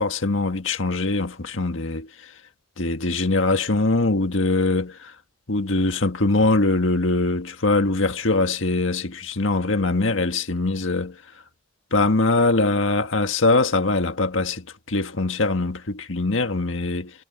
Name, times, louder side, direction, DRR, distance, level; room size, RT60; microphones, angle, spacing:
voice 1, 0.0-2.1 2.8-5.1 5.5-11.2 11.9-17.1, left 2 dB, 80° left, 1.7 m, -22 dB
head